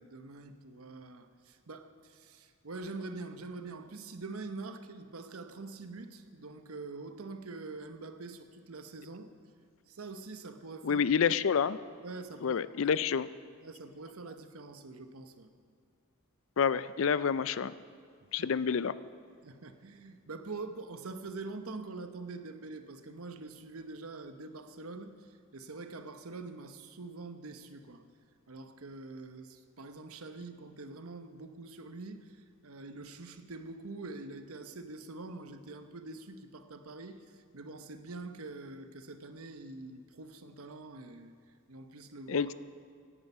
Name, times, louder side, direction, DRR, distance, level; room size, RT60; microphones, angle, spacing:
voice 1, 0.0-9.3 9.9-11.0 12.0-12.6 12.8-13.0 13.6-15.5 18.4-18.6 19.4-28.0 28.5-42.5, right 3 dB, 80° right, 8 dB, 1.0 m, -45 dB
voice 2, 10.8-11.8 12.4-13.3 16.6-17.7 18.3-18.9 42.3-42.5, left 6 dB, 65° left, 16 dB, 0.4 m, -28 dB
16.5 x 11.0 x 5.6 m, 2.3 s
head